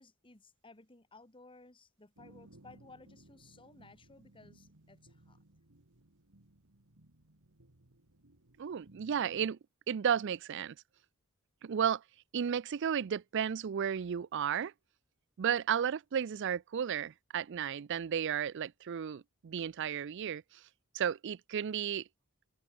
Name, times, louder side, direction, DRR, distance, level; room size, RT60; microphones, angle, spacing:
voice 1, 0.0-5.4, left 3 dB, 25° left, 1.9 m, -58 dB
sound 1, 2.2-9.5, right 1 dB, 75° right, 2.2 m, -61 dB
voice 2, 8.6-9.6 9.9-10.7 11.6-12.0 12.3-14.7 15.4-20.4 20.9-22.0, right 8 dB, 55° right, 0.4 m, -33 dB
head